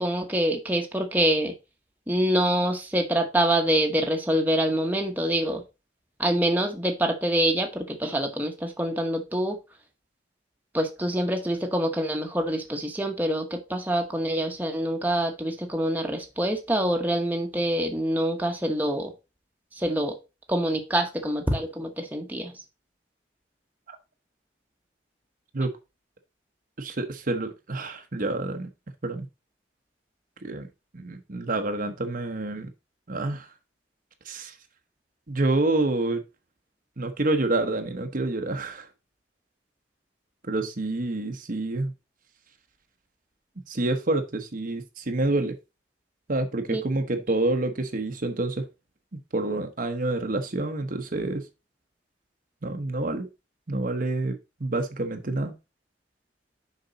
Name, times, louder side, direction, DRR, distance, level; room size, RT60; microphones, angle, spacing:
voice 1, 0.0-1.5 2.1-5.6 6.2-9.6 10.7-19.1 19.7-20.2 20.5-22.5 46.7-46.8, right 1 dB, 10° right, 1.1 m, -25 dB
voice 2, 26.8-28.7 29.0-29.3 30.4-30.7 30.9-32.7 33.1-33.5 34.2-34.5 35.3-36.2 37.0-38.9 40.5-41.9 43.7-45.5 46.3-48.7 49.1-51.5 52.6-53.3 53.7-55.5, right 2 dB, 45° right, 1.0 m, -28 dB
6.7 x 5.3 x 4.0 m
head